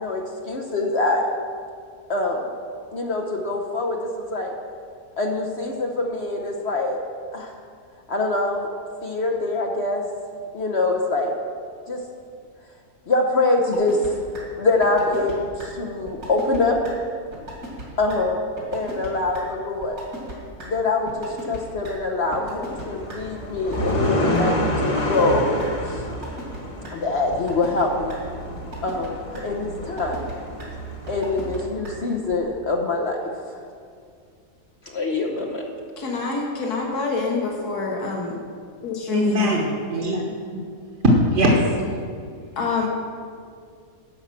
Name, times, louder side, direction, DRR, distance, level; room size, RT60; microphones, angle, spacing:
voice 1, 0.0-1.3 2.1-2.5 2.9-4.5 5.2-7.0 7.3-7.5 8.1-8.7 9.0-10.0 10.5-11.3 11.9-12.0 13.1-14.0 14.6-16.8 18.0-18.4 18.7-20.0 20.7-25.5 25.8-26.2 26.9-28.2 28.8-30.3 31.1-33.2 33.5-33.6 34.9-35.6, left 2 dB, 50° left, 1.0 m, -24 dB
sound 1, 13.7-14.1 14.3-14.4 14.8-15.3 15.6-15.7 16.1-16.6 16.8-16.9 17.3-17.8 18.1-18.2 18.6-19.1 19.3-19.4 19.8-20.3 20.6-20.7 21.1-21.6 21.8-21.9 22.3-23.2 23.6-24.4 24.8-25.3 25.6-25.7 26.1-26.6 26.8-26.9 27.3-27.8 28.1-28.2 28.6-29.1 29.3-29.4 29.8-30.3 30.6-30.7 31.1-31.6 31.8-31.9 32.3-32.4, right 1 dB, 75° right, 3.1 m, -36 dB
sound 2, 22.7-31.7, left 1 dB, 25° left, 0.8 m, -28 dB
voice 2, 36.0-38.4 38.8-39.6 42.6-42.9, left 4 dB, 80° left, 1.9 m, -26 dB
voice 3, 39.1-40.6 41.3-41.5 41.9-42.0, equal, 45° right, 1.4 m, -22 dB
11.5 x 5.5 x 7.5 m
omnidirectional pair, 1.6 m